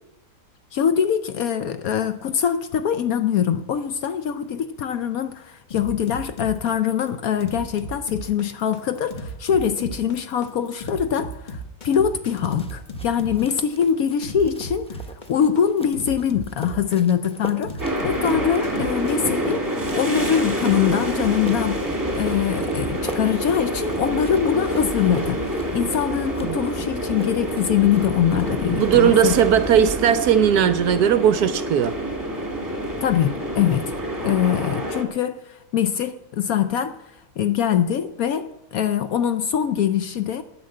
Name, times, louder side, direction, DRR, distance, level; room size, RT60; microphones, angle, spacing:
voice 1, 0.7-15.0 15.3-21.8 22.1-29.4 33.0-33.9 34.2-37.0 37.4-40.4, left 8 dB, 65° left, 0.9 m, -23 dB
sound 1, 5.7-19.4, right 1 dB, 30° left, 1.1 m, -35 dB
sound 2, 12.3-29.1 29.3-30.0, equal, 5° left, 0.7 m, -41 dB
sound 3, 17.8-35.0, right 1 dB, 10° right, 1.6 m, -27 dB
voice 2, 28.7-32.0, right 9 dB, 70° right, 1.0 m, -18 dB
10.0 x 9.5 x 7.6 m
omnidirectional pair, 1.9 m